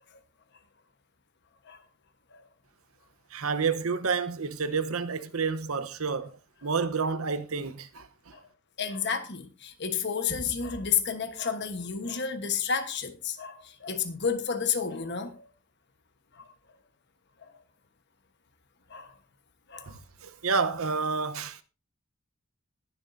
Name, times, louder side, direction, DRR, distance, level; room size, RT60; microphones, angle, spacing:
voice 1, 3.3-6.3 6.6-8.4 19.9-21.6, right 5 dB, 75° right, 1.0 m, -29 dB
voice 2, 8.8-15.5 16.3-16.5 17.4-17.5 18.9-19.1 19.7-20.0, left 6 dB, 50° left, 1.2 m, -31 dB
20.0 x 7.3 x 2.7 m
head